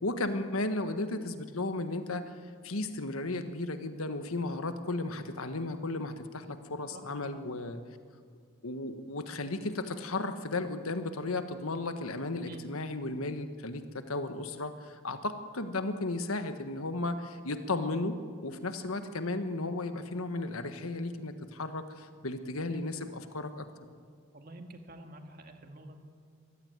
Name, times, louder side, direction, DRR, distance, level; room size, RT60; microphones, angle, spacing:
voice 1, 0.0-2.3 2.6-7.8 8.6-18.2 18.4-23.7, left 2 dB, 80° left, 9 dB, 1.5 m, -34 dB
voice 2, 24.3-26.0, right 2 dB, 45° right, 5 dB, 2.0 m, -48 dB
24.5 x 16.0 x 9.6 m, 2.2 s
head